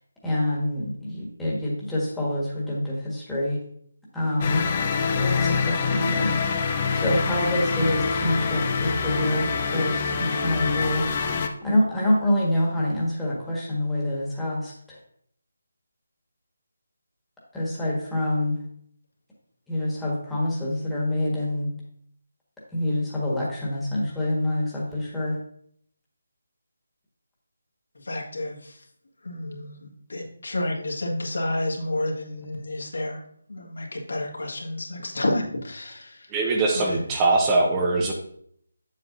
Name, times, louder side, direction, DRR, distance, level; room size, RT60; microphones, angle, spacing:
voice 1, 0.2-3.6 4.1-4.7 5.2-15.0 17.5-18.6 19.7-21.7 22.7-25.4, left 1 dB, 5° left, -7 dB, 1.6 m, -26 dB
sound 1, 4.4-11.5, left 5 dB, 30° left, 0.6 m, -25 dB
voice 2, 28.0-28.8 29.2-33.2 33.5-36.3 36.7-37.0, left 1 dB, 75° left, -1 dB, 1.8 m, -30 dB
voice 3, 36.3-38.1, right 2 dB, 20° right, 0 dB, 0.8 m, -22 dB
7.5 x 7.4 x 2.6 m, 0.66 s
figure-of-eight pair, 160°, 0 cm